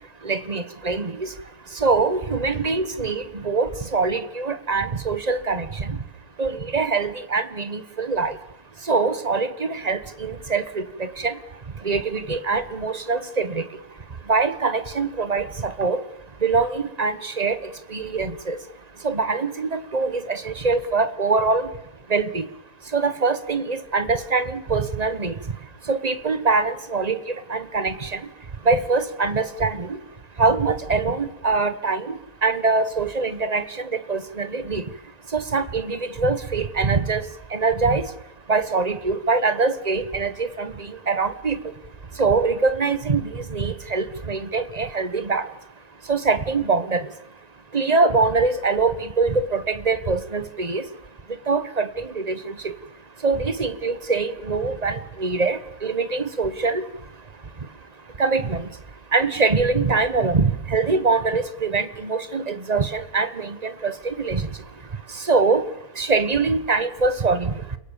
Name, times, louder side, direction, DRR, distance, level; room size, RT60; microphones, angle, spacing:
voice 1, 0.2-1.3 1.7-6.0 6.4-8.4 8.9-11.4 11.8-13.6 14.3-16.0 16.4-17.6 17.9-18.6 19.0-21.7 22.1-22.5 22.9-25.4 25.9-28.2 28.6-30.0 30.4-34.9 35.3-37.2 37.5-38.1 38.5-41.6 42.2-45.4 46.1-47.1 47.7-50.8 51.5-52.7 53.2-56.8 58.2-58.7 59.1-64.5 65.1-65.6 66.0-67.5, right 4 dB, 30° right, 12 dB, 1.2 m, -23 dB
29.5 x 17.5 x 7.3 m, 0.85 s
omnidirectional pair, 1.5 m